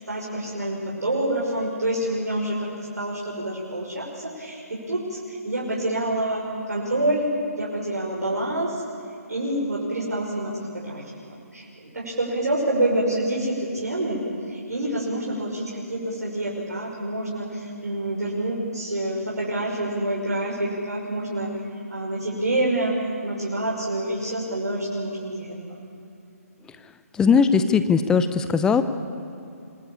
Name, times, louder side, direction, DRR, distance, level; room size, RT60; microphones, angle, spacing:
voice 1, 0.1-8.8 9.3-21.5 21.9-25.8, right 1 dB, 85° right, -4 dB, 5.7 m, -27 dB
voice 2, 27.1-28.8, left 6 dB, 10° left, 11 dB, 0.8 m, -19 dB
26.5 x 19.5 x 8.7 m, 2.7 s
figure-of-eight pair, 150°, 8 cm